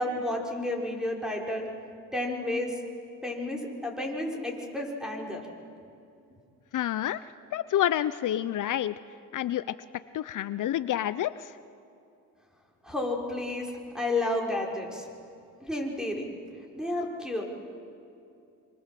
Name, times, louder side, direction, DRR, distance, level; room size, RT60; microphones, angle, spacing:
voice 1, 0.0-1.7 2.1-2.7 3.2-5.4 12.8-13.7 13.9-15.1 15.6-16.3 16.7-17.4, left 1 dB, ahead, 0 dB, 5.7 m, -31 dB
voice 2, 6.7-7.2 7.5-9.0 9.3-9.6 10.1-11.5, left 12 dB, 65° left, 14 dB, 0.7 m, -28 dB
26.0 x 26.0 x 7.7 m, 2.6 s
cardioid pair, 80°, 34 cm